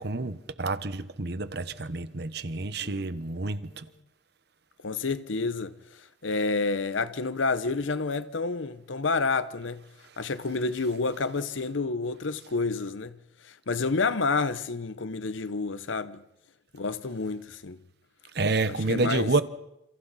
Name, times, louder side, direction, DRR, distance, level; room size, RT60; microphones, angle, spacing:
voice 1, 0.0-3.8 18.3-19.4, right 3 dB, 60° right, 1.1 m, -29 dB
voice 2, 4.8-5.7 6.2-9.8 10.2-13.2 13.4-16.2 16.7-17.8 18.7-19.3, left 4 dB, 90° left, 0.8 m, -29 dB
29.0 x 28.0 x 4.2 m
head